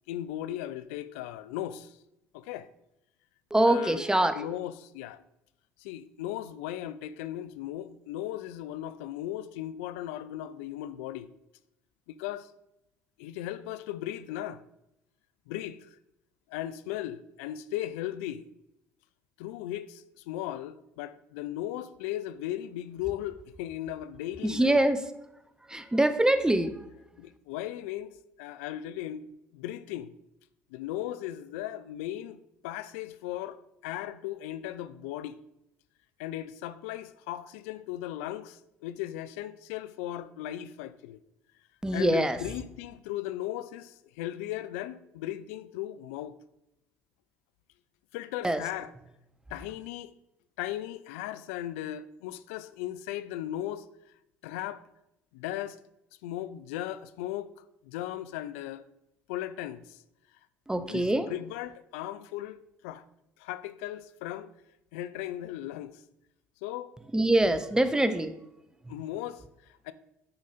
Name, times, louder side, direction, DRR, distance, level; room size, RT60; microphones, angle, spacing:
voice 1, 0.1-2.0 2.3-2.7 3.7-4.1 4.3-5.2 5.8-11.3 12.1-12.5 13.2-14.6 15.5-16.0 16.5-18.4 19.4-24.8 27.2-30.1 30.7-35.4 36.2-41.2 41.9-46.4 48.1-48.9 49.5-50.1 50.6-53.9 54.4-54.8 55.3-55.8 56.2-57.5 57.8-58.8 59.3-60.0 60.9-63.0 63.4-64.5 64.9-66.0 66.6-66.9 68.9-69.9, left 13 dB, 80° left, 0.3 m, -37 dB
voice 2, 3.5-4.5 24.4-25.0 25.6-26.9 41.8-42.4 48.4-48.6 60.7-61.3 67.1-68.3 68.8-69.0, right 1 dB, 10° right, 0.7 m, -24 dB
8.6 x 4.9 x 4.2 m
hypercardioid pair, 60°, 7 cm